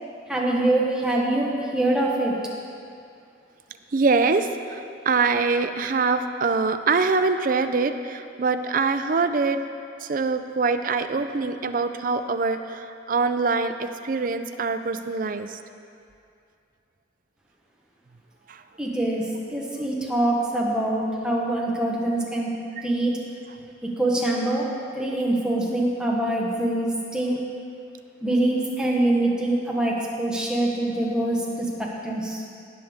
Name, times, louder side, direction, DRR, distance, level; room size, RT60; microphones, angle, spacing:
voice 1, 0.3-2.3 18.8-19.2 19.5-22.5 22.8-23.2 23.8-24.7 24.9-27.4 28.2-32.4, right 1 dB, 5° right, -3 dB, 1.1 m, -24 dB
voice 2, 3.9-9.6 10.0-15.6 18.5-18.6, right 4 dB, 45° right, 9 dB, 0.4 m, -24 dB
17.5 x 6.5 x 3.5 m, 2.4 s
head